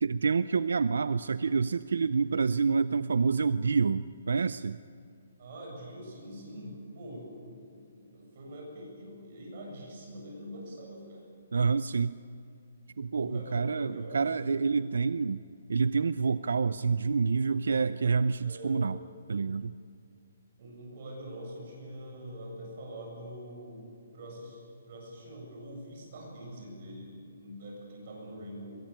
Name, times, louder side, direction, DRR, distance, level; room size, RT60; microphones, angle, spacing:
voice 1, 0.0-4.8 11.5-12.2 13.0-15.4 15.7-19.0 19.3-19.7, right 5 dB, 80° right, 15 dB, 0.5 m, -27 dB
voice 2, 5.4-11.2 13.1-14.7 18.4-18.9 20.6-28.8, equal, 35° right, -1 dB, 7.7 m, -44 dB
22.5 x 22.0 x 8.9 m, 2.3 s
hypercardioid pair, 180°, 0 cm